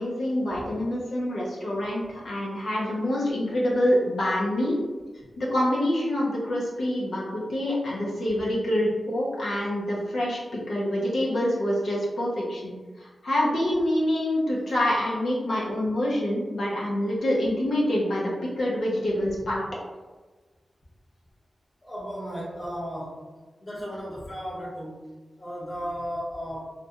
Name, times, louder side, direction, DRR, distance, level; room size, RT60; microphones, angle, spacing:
voice 1, 0.0-4.8 5.4-18.3 18.6-19.6, left 1 dB, 80° left, -5 dB, 0.6 m, -26 dB
voice 2, 21.8-23.2 23.6-25.0 25.4-26.7, equal, 25° left, -6 dB, 0.8 m, -35 dB
2.4 x 2.2 x 2.7 m, 1.3 s
wide cardioid pair, 130°, 0 cm